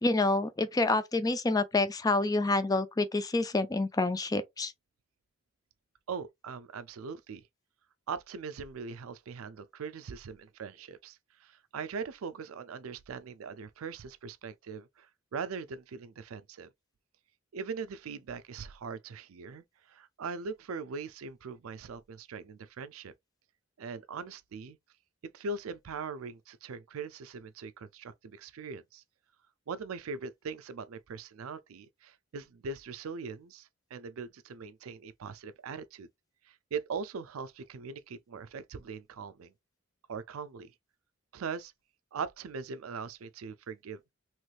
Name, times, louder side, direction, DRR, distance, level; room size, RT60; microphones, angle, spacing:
voice 1, 0.0-4.7, left 2 dB, 20° left, 0.4 m, -28 dB
voice 2, 6.1-7.4 8.1-16.7 17.5-23.1 23.8-24.8 25.3-29.0 29.7-36.1 36.5-39.5 40.1-40.7 41.3-41.7 42.1-44.0, right 5 dB, 90° right, 0.4 m, -41 dB
3.2 x 3.1 x 2.4 m
head